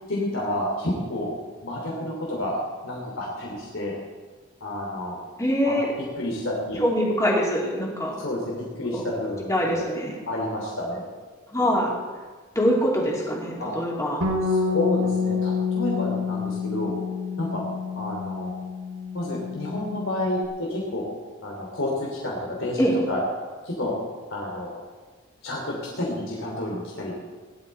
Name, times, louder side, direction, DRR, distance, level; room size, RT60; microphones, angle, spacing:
voice 1, 0.1-1.3 1.6-4.0 4.6-5.2 5.6-5.7 6.2-6.8 8.2-9.8 10.3-11.1 13.6-13.7 14.4-17.0 17.4-17.6 17.9-18.5 19.1-21.0 21.4-22.8 23.1-23.2 23.6-23.9 24.3-24.7 25.4-27.1, left 1 dB, 75° left, -3 dB, 3.0 m, -30 dB
voice 2, 5.4-5.9 6.8-8.2 8.9-9.0 9.5-10.2 11.5-11.9 12.5-14.2 22.8-23.0, equal, 15° left, -3 dB, 3.0 m, -23 dB
Bass guitar, 14.2-20.5, left 5 dB, 90° right, 2.8 m, -28 dB
18.5 x 11.5 x 4.3 m, 1.4 s
head